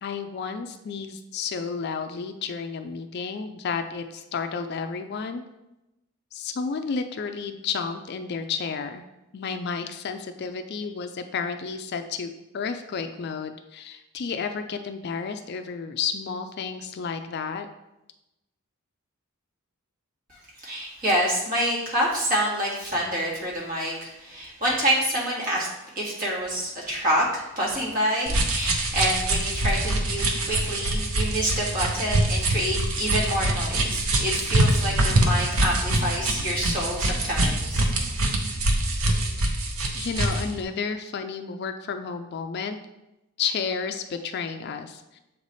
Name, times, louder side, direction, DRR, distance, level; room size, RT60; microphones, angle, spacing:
voice 1, 0.0-5.4 6.3-9.0 9.3-17.7 39.4-39.6 39.9-42.8 43.4-45.2, left 5 dB, 45° left, 7 dB, 0.3 m, -31 dB
voice 2, 20.6-25.7 26.0-37.8, right 1 dB, 40° right, -6 dB, 1.8 m, -27 dB
sound 1, 28.3-40.5, right 1 dB, 70° right, 0.8 m, -24 dB
7.2 x 3.3 x 4.0 m, 0.94 s
head